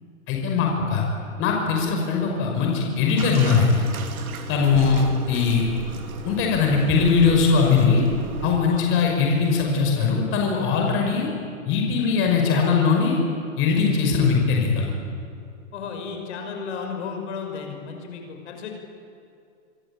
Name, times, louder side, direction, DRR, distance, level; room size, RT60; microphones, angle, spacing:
voice 1, 0.3-1.0 1.4-3.8 4.5-5.7 6.2-8.0 8.4-11.3 11.6-13.2 13.6-14.9, left 5 dB, 30° left, 1 dB, 5.7 m, -20 dB
Bathtub (filling or washing), 3.2-8.6, right 4 dB, 80° right, 3.4 m, -34 dB
voice 2, 8.7-9.0 15.7-18.7, left 5 dB, 55° left, 3 dB, 5.9 m, -34 dB
25.5 x 25.0 x 8.8 m, 2.5 s
hypercardioid pair, 145°, 42 cm